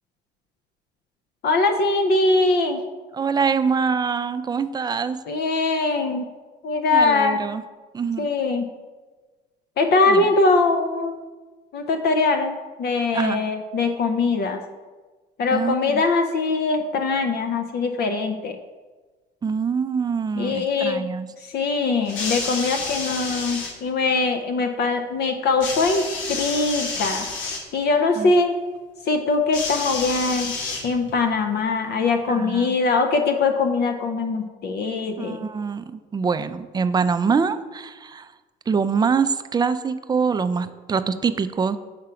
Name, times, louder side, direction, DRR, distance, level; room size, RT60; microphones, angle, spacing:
voice 1, 1.4-2.8 5.3-6.2 6.6-7.4 8.2-8.7 9.8-11.2 11.7-14.6 15.4-18.6 20.4-21.0 21.4-27.3 27.7-28.5 29.1-30.5 30.8-35.5, left 3 dB, 55° left, 5 dB, 0.6 m, -22 dB
voice 2, 3.1-5.2 6.9-7.6 7.9-8.3 10.1-10.3 13.1-13.4 15.5-16.0 19.4-21.3 28.2-28.3 32.3-32.8 35.2-38.3 38.7-41.8, right 5 dB, 20° right, 11 dB, 0.4 m, -24 dB
sound 1, 22.0-23.7 25.6-27.6 29.5-31.2 32.2-32.3, left 4 dB, 75° left, 1.3 m, -30 dB
5.9 x 3.7 x 5.7 m, 1.3 s
supercardioid pair, 85°, 20 cm